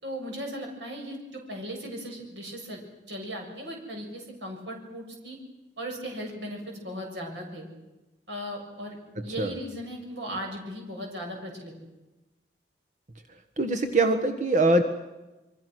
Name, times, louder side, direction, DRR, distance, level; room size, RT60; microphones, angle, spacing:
voice 1, 0.0-2.8 3.1-5.4 5.8-7.7 8.3-9.0 9.2-11.7, equal, 75° right, 1 dB, 6.9 m, -37 dB
voice 2, 13.6-14.8, right 2 dB, 45° right, 7 dB, 1.5 m, -22 dB
28.0 x 23.5 x 6.4 m, 1.1 s
head